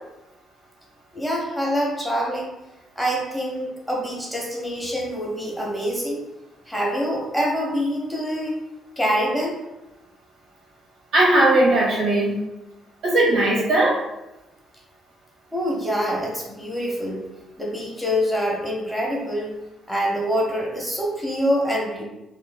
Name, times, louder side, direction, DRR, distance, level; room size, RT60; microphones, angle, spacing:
voice 1, 1.1-2.5 3.0-6.2 6.7-8.6 9.0-9.5 15.5-17.2 17.6-19.5 19.9-22.0, equal, ahead, -3 dB, 0.7 m, -25 dB
voice 2, 11.1-12.4 13.0-14.0, right 1 dB, 70° right, -4 dB, 1.0 m, -18 dB
3.0 x 2.5 x 2.2 m, 0.96 s
cardioid pair, 90°, 0 cm